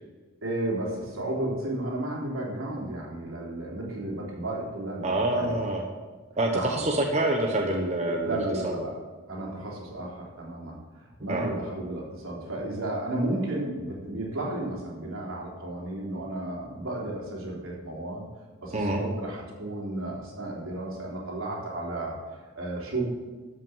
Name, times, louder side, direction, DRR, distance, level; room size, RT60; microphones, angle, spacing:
voice 1, 0.4-5.6 6.5-6.8 8.2-8.9 9.3-18.2 18.6-23.0, right 1 dB, 80° right, -3 dB, 3.5 m, -33 dB
voice 2, 5.0-5.8 6.4-8.4 8.6-8.7 11.3-11.5 18.7-19.0, right 1 dB, 35° right, 1 dB, 1.0 m, -26 dB
13.0 x 5.6 x 7.2 m, 1.3 s
head